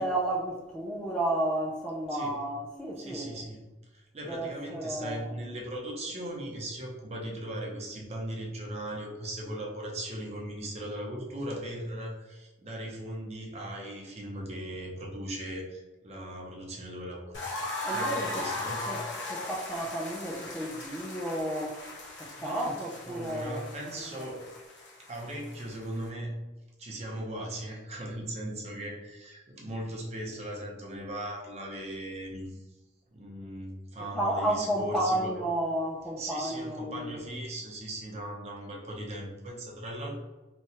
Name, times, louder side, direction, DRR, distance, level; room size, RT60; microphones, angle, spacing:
voice 1, 0.0-3.4 4.3-5.4 17.8-18.5 18.9-19.0 19.3-21.8 22.2-23.6 24.2-24.3 34.1-37.2, right 1 dB, 5° left, -3 dB, 0.3 m, -32 dB
voice 2, 3.0-3.6 3.9-17.4 17.9-18.9 22.1-22.8 23.1-24.5 25.1-26.3 26.8-32.6 33.1-35.4 36.2-40.1, right 1 dB, 35° right, -1 dB, 0.7 m, -38 dB
sound 1, 17.3-26.1, left 2 dB, 75° left, 0.9 m, -38 dB
3.0 x 2.2 x 2.8 m, 1.1 s
head